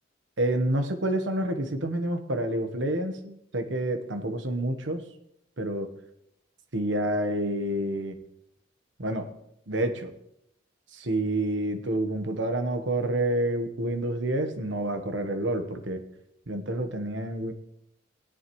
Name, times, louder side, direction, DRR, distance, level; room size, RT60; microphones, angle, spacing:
voice 1, 0.4-5.1 5.6-5.9 6.7-8.2 9.0-9.3 9.7-10.1 10.9-16.0 16.5-17.5, right 1 dB, 80° right, 7 dB, 1.2 m, -28 dB
17.5 x 10.5 x 3.2 m, 0.78 s
head